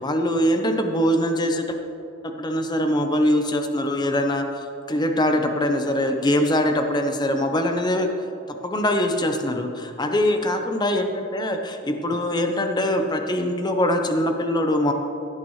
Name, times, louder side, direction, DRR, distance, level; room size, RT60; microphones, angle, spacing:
voice 1, 0.0-1.8 2.2-4.5 4.9-8.1 8.5-9.7 10.0-14.9, left 1 dB, 20° left, 5 dB, 0.7 m, -22 dB
16.5 x 9.2 x 3.1 m, 2.8 s
head